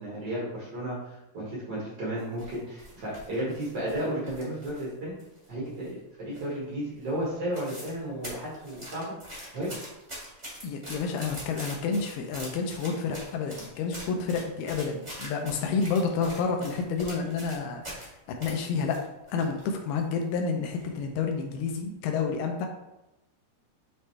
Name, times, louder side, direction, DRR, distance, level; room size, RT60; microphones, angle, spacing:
voice 1, 0.0-5.1 5.5-9.1 9.5-9.8, right 1 dB, 75° right, -6 dB, 1.0 m, -33 dB
sound 1, 2.2-4.9 5.2-6.0 6.3-6.7 7.0-7.1 7.3-8.0 8.2-18.1 18.4-19.6 20.0-20.1 20.7-21.1 21.5-21.7, equal, 35° right, 0.6 m, -43 dB
voice 2, 10.6-19.0 19.3-22.7, left 5 dB, 80° left, 3 dB, 2.3 m, -29 dB
9.0 x 3.2 x 3.3 m, 0.95 s
omnidirectional pair, 5.1 m